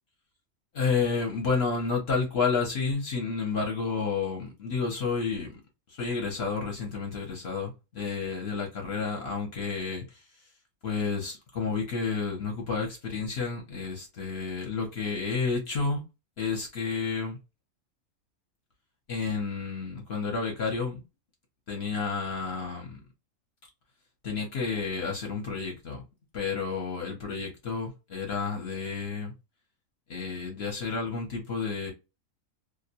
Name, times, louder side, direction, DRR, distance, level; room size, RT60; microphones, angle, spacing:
voice 1, 0.7-5.6 5.9-10.2 10.8-16.0 16.4-17.4 19.1-21.0 21.7-23.0 24.2-26.0 26.3-29.3 30.1-31.9, left 5 dB, 55° left, 0.9 m, -30 dB
2.4 x 2.1 x 2.7 m
omnidirectional pair, 1.4 m